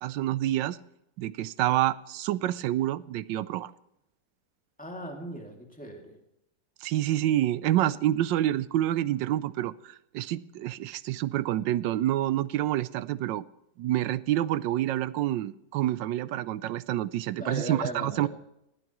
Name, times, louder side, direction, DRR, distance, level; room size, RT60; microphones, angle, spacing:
voice 1, 0.0-0.8 1.2-3.7 6.8-13.4 13.8-18.3, right 13 dB, 80° right, 17 dB, 1.3 m, -28 dB
voice 2, 4.8-6.2 17.4-18.3, equal, 5° left, 1 dB, 2.3 m, -37 dB
19.0 x 12.5 x 3.0 m, 0.82 s
omnidirectional pair, 2.0 m